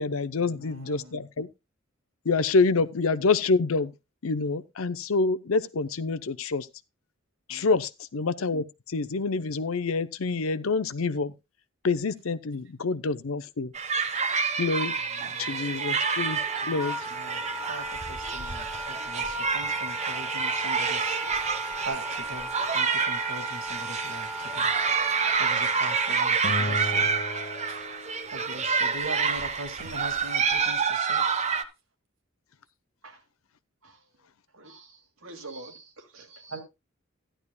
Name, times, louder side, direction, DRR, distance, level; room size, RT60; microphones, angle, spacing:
voice 1, 0.0-1.5 2.2-3.9 4.2-6.7 7.5-11.3 11.8-13.7 14.6-14.9 15.2-16.4 16.7-17.0, left 4 dB, 85° left, 0.7 m, -27 dB
voice 2, 0.6-1.1 7.5-7.7 15.3-15.4 16.6-21.2 21.8-24.7 25.4-27.1 27.7-27.8 28.3-31.3 36.5-36.6, right 1 dB, 65° right, 2.4 m, -41 dB
sound 1, 13.7-31.6, right 5 dB, 35° right, 1.0 m, -28 dB
Wind instrument woodwind instrument, 16.2-26.2, right 1 dB, 5° right, 1.6 m, -37 dB
Acoustic guitar, 26.4-28.8, left 2 dB, 35° left, 0.8 m, -35 dB
voice 3, 34.5-36.6, right 2 dB, 80° right, 2.3 m, -46 dB
13.5 x 11.0 x 2.3 m
head